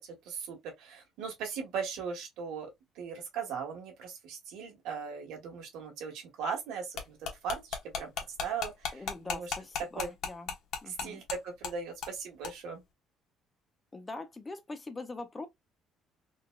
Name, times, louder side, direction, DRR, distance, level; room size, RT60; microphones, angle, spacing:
voice 1, 0.0-2.7 2.9-7.2 7.4-8.1 8.4-9.5 10.0-10.1 10.9-12.8, right 6 dB, 85° right, 1.4 m, -38 dB
sound 1, 7.0-11.4 11.6-11.7 12.0-12.2 12.4-12.5, left 7 dB, 60° left, 1.0 m, -35 dB
voice 2, 8.9-10.5 10.8-11.2 13.9-15.5, left 3 dB, 15° left, 0.5 m, -43 dB
3.8 x 2.2 x 2.2 m
cardioid pair, 145°, 0 cm